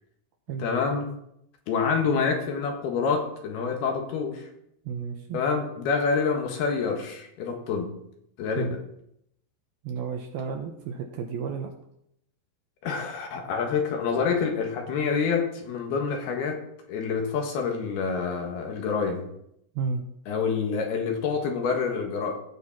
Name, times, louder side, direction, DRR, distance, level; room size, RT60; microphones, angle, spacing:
voice 1, 0.6-1.2 1.7-4.5 5.3-7.9 8.4-8.8 12.8-16.6 16.9-19.3 20.3-22.4, left 5 dB, 70° left, 2 dB, 3.2 m, -27 dB
voice 2, 4.9-5.4 8.6-8.8 9.8-11.7 19.8-20.0, right 5 dB, 75° right, 3 dB, 2.4 m, -32 dB
16.5 x 6.9 x 4.2 m, 0.75 s
omnidirectional pair, 5.1 m